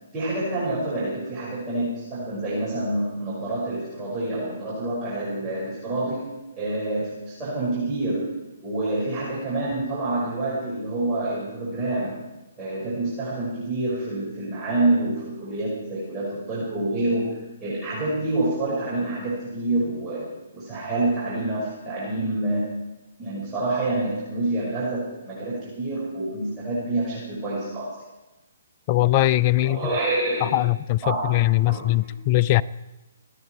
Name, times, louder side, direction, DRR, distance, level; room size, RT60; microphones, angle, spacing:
voice 1, 0.1-6.3 6.5-8.3 8.6-12.1 12.6-20.3 20.5-22.7 23.2-28.0 29.6-30.5 31.0-32.1, right 2 dB, 15° right, -9 dB, 5.9 m, -27 dB
voice 2, 28.9-29.8 30.4-32.6, left 16 dB, 35° left, 17 dB, 0.4 m, -21 dB
26.5 x 9.3 x 4.7 m, 1.0 s
figure-of-eight pair, 130°, 0 cm